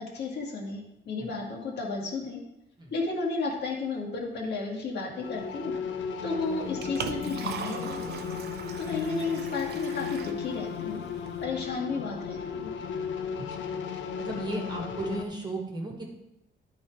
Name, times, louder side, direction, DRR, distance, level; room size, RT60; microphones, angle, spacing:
voice 1, 0.1-0.8 1.1-2.4 2.9-5.7 6.2-8.4 8.8-11.0 11.4-12.7, left 3 dB, 60° left, -2 dB, 1.9 m, -33 dB
sound 1, 5.2-15.2, left 7 dB, 75° left, 0.8 m, -35 dB
Liquid, 6.4-11.5, right 7 dB, 55° right, 0.6 m, -40 dB
voice 2, 14.2-16.1, right 2 dB, 20° right, 0 dB, 1.5 m, -35 dB
11.5 x 4.1 x 4.7 m, 0.87 s
cardioid pair, 165°, 20 cm